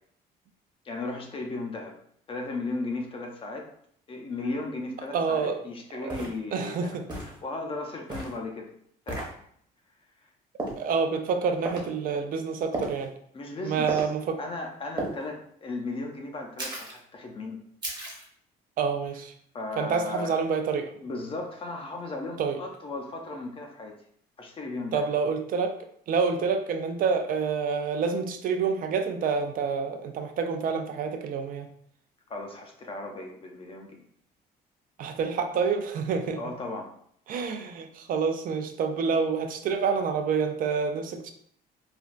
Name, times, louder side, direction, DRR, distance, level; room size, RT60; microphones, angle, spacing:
voice 1, 0.8-1.9 2.3-3.7 4.1-8.7 9.1-9.3 13.3-14.1 14.4-17.6 19.5-20.3 21.0-23.9 24.4-25.1 32.3-34.0 36.3-36.9, left 2 dB, 35° left, 2 dB, 0.5 m, -36 dB
voice 2, 5.1-5.6 6.0-7.0 10.8-13.1 13.6-14.4 18.8-19.3 19.8-20.9 22.4-22.6 24.9-25.8 26.1-31.7 35.0-36.4 37.3-41.3, right 5 dB, 55° right, 6 dB, 0.4 m, -28 dB
sound 1, 5.3-5.4 6.1-6.4 7.1-7.4 8.1-8.4 9.1-9.3 10.6-10.8 11.7-11.9 12.7-13.0 13.9-14.1 15.0-15.2 16.6-17.0 17.8-18.3, right 2 dB, 25° right, 0.9 m, -33 dB
3.2 x 2.3 x 2.4 m, 0.65 s
cardioid pair, 110°, 17 cm